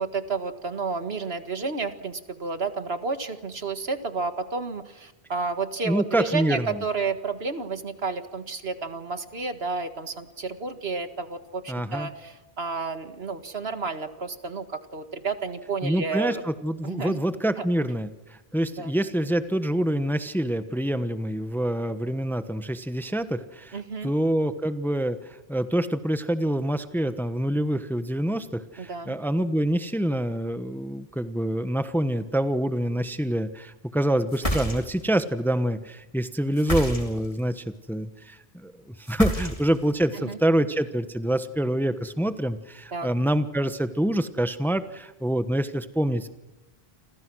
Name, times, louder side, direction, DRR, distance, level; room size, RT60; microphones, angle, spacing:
voice 1, 0.0-16.4 16.8-17.2 17.6-17.7 18.8-18.9 23.7-24.1 28.8-29.2 40.1-40.4 42.9-43.1, right 4 dB, 70° right, 9 dB, 2.0 m, -31 dB
voice 2, 5.8-6.8 11.7-12.1 15.8-46.3, right 1 dB, ahead, 10 dB, 1.1 m, -26 dB
sound 1, 34.3-35.1 36.5-37.4 39.1-39.9, equal, 35° left, 4.5 m, -29 dB
29.0 x 25.5 x 6.3 m, 1.0 s
omnidirectional pair, 1.1 m